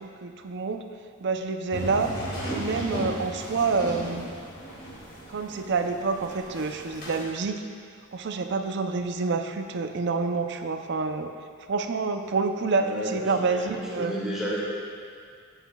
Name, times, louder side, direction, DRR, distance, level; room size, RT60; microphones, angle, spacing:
voice 1, 0.0-0.9 1.2-2.1 2.5-4.3 5.3-7.6 8.1-11.3 11.7-14.2, right 4 dB, 50° right, 6 dB, 0.5 m, -28 dB
sound 1, 1.7-7.3, equal, 40° left, 2.0 m, -36 dB
voice 2, 12.8-14.6, equal, ahead, -8 dB, 1.5 m, -32 dB
11.0 x 8.2 x 2.3 m, 2.2 s
head